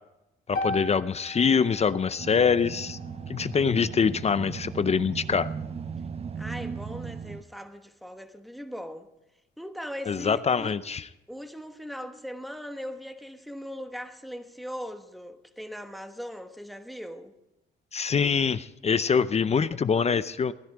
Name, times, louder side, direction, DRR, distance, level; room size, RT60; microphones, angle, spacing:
sound 1, 0.5-4.7, left 1 dB, 50° left, 1.6 m, -38 dB
voice 1, 0.5-3.0 3.3-5.5 10.1-11.0 17.9-20.5, left 6 dB, 35° left, 0.5 m, -24 dB
sound 2, 2.2-7.4, right 6 dB, 30° right, 0.5 m, -37 dB
voice 2, 6.3-9.1 9.6-10.8 11.3-17.3, equal, ahead, 1.2 m, -39 dB
16.5 x 10.5 x 4.9 m
cardioid pair, 90°, 20 cm